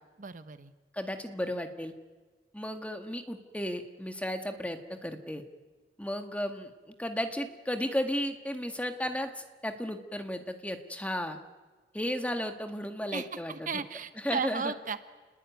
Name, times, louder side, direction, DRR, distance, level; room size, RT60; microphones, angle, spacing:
voice 1, 0.2-0.7 13.1-15.0, right 5 dB, 45° right, 11 dB, 0.9 m, -35 dB
voice 2, 0.9-1.9 2.5-5.4 6.0-6.7 7.0-11.4 11.9-13.5 14.2-14.7, equal, 10° left, 6 dB, 1.7 m, -34 dB
30.0 x 20.0 x 9.3 m, 1.4 s
head